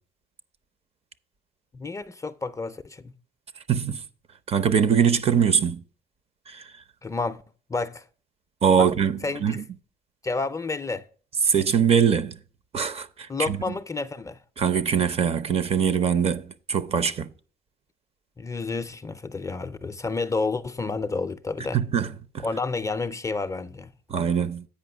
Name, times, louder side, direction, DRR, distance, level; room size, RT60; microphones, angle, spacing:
voice 1, 1.7-3.1 7.0-7.4 7.7-8.0 8.8-8.9 9.2-9.6 10.2-11.1 13.3-14.4 18.4-21.8 22.4-23.9, left 3 dB, 20° left, 0.4 m, -30 dB
voice 2, 3.7-4.0 4.5-5.8 6.5-6.6 8.6-9.6 11.5-12.4 12.7-13.7 14.6-17.3 21.7-22.4 24.1-24.7, right 7 dB, 35° right, 0.6 m, -23 dB
8.6 x 5.2 x 6.0 m
cardioid pair, 110°, 17 cm